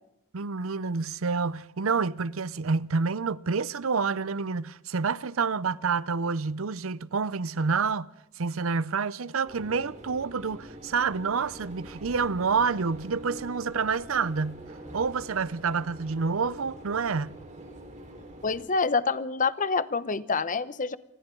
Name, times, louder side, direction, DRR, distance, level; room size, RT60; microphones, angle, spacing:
voice 1, 0.3-8.1 8.4-14.6 14.9-17.4, right 5 dB, 70° right, 0.7 m, -28 dB
sound 1, 9.4-18.6, right 1 dB, 35° right, 4.4 m, -45 dB
voice 2, 18.4-21.0, left 4 dB, 40° left, 0.9 m, -27 dB
27.5 x 25.0 x 3.9 m
head